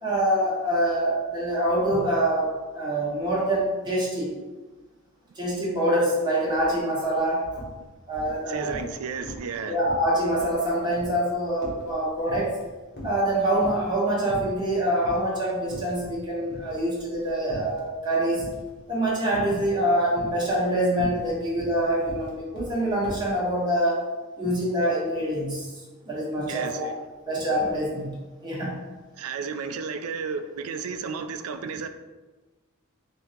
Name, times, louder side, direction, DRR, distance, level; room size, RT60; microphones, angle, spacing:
voice 1, 0.0-2.5 2.7-4.3 5.3-7.6 8.1-8.8 9.7-12.5 13.0-18.4 18.9-24.0 24.4-25.7 26.1-26.8 27.3-28.2 28.4-28.7, right 1 dB, 20° right, -7 dB, 1.4 m, -25 dB
sound 1, 6.5-6.7 7.0-7.7 8.1-9.0 9.2-9.6 9.9-12.7 12.9-13.9 14.3-14.7 15.0-15.2 15.6-16.2 16.5-17.9 18.4-18.8 19.3-19.8 20.1-23.3, right 1 dB, 50° left, 1.2 m, -39 dB
voice 2, 8.5-9.8 26.5-26.9 29.2-31.9, right 5 dB, 75° right, 9 dB, 0.4 m, -33 dB
4.4 x 2.8 x 3.7 m, 1.2 s
head